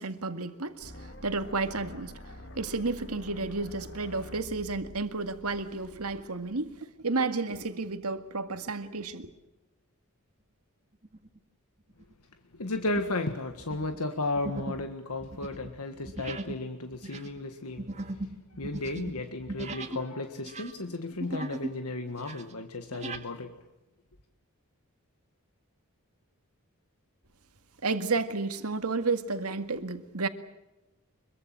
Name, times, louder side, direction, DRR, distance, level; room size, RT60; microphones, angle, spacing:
voice 1, 0.0-2.1 2.6-9.3 27.8-30.3, right 3 dB, 85° right, 2.0 m, -32 dB
sound 1, 0.8-6.8, left 1 dB, 55° left, 2.1 m, -47 dB
sound 2, 11.0-11.4 11.9-12.1 12.7-13.2 13.5-20.1 20.4-21.8 22.1-23.3, right 2 dB, 30° right, 2.0 m, -39 dB
voice 2, 12.5-17.9 18.5-23.6, left 2 dB, 85° left, 1.6 m, -34 dB
24.5 x 23.0 x 7.5 m
head